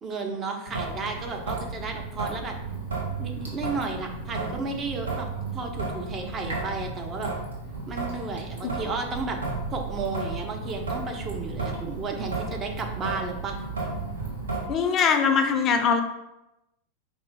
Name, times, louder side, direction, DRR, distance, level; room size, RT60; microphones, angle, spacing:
voice 1, 0.0-2.6 3.2-5.3 5.5-7.3 7.9-9.4 9.7-13.6, right 4 dB, 25° right, 3 dB, 0.7 m, -33 dB
Traffic noise roadway noise / Drip / Trickle dribble, 0.7-14.7, right 3 dB, 70° right, 1.1 m, -33 dB
voice 2, 14.7-16.0, left 6 dB, 30° left, 6 dB, 0.5 m, -22 dB
4.9 x 2.6 x 3.5 m, 0.91 s
figure-of-eight pair, 90°, 0 cm